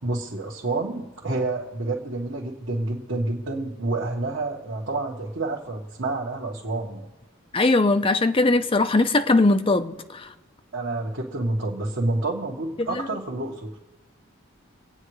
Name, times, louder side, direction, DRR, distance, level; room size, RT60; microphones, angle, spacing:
voice 1, 0.0-7.1 10.7-13.7, right 2 dB, 65° right, 1.5 m, -28 dB
voice 2, 7.5-10.3 12.9-13.1, left 2 dB, 30° left, 0.6 m, -20 dB
26.0 x 9.1 x 3.2 m
head